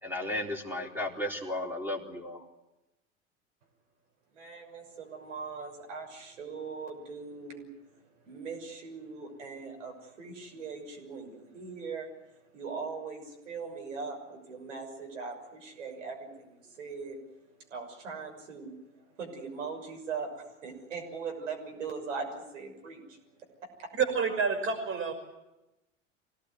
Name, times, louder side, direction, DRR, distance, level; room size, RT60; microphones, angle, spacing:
voice 1, 0.0-2.4, left 1 dB, 5° right, 4.0 m, -34 dB
voice 2, 4.3-7.7 8.2-12.1 12.5-17.2 17.7-18.7 19.2-20.3 20.6-23.2 23.8-23.9, right 5 dB, 75° right, 6.4 m, -40 dB
voice 3, 23.9-25.1, right 5 dB, 35° right, 5.3 m, -28 dB
25.0 x 18.0 x 9.5 m
figure-of-eight pair, 80°, 37 cm